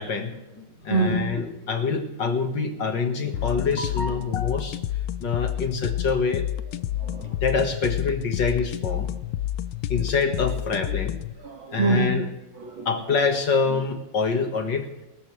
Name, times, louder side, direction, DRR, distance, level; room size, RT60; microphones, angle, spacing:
voice 1, 0.0-4.8 5.2-6.4 7.4-9.1 9.9-11.2 11.7-12.3 12.9-14.9, left 5 dB, 55° left, 5 dB, 2.3 m, -26 dB
voice 2, 0.9-1.4 7.0-7.4 10.9-11.0 11.4-12.2 12.6-13.1, right 3 dB, 65° right, 0 dB, 2.9 m, -26 dB
sound 1, 3.3-11.3, left 12 dB, 75° left, 1.5 m, -29 dB
27.5 x 13.5 x 3.3 m, 0.97 s
omnidirectional pair, 2.4 m